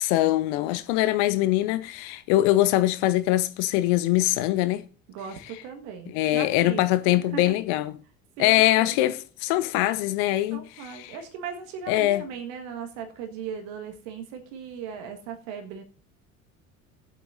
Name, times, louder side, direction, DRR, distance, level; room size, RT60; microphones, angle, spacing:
voice 1, 0.0-4.8 6.1-7.9 8.4-10.6 11.0-11.2 11.9-12.2, left 15 dB, 50° left, 0.8 m, -23 dB
voice 2, 5.1-6.8 7.3-7.6 8.4-9.0 10.5-15.8, right 6 dB, 55° right, 1.7 m, -38 dB
19.5 x 7.8 x 2.6 m
figure-of-eight pair, 65°, 42 cm